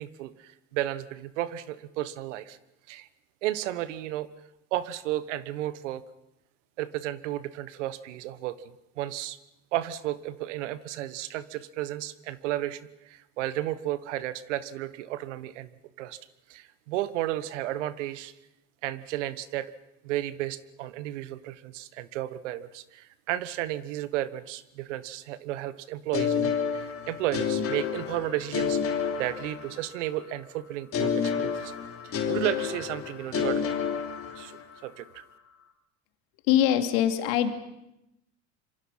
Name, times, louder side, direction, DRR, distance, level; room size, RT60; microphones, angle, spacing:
voice 1, 0.0-2.6 2.9-3.1 3.4-4.3 4.7-6.0 6.8-9.4 9.7-12.8 13.1-15.7 16.0-16.2 16.5-18.3 18.8-19.7 20.0-31.7 32.0-33.7 34.3-34.5 34.8-35.2, right 14 dB, 85° right, 15 dB, 1.3 m, -33 dB
sound 1, 26.1-30.1 30.9-34.8, left 7 dB, 40° left, 3.2 m, -30 dB
voice 2, 36.5-37.5, left 11 dB, 70° left, 6 dB, 2.7 m, -23 dB
27.0 x 24.0 x 5.7 m, 0.88 s
supercardioid pair, 105°, 35 cm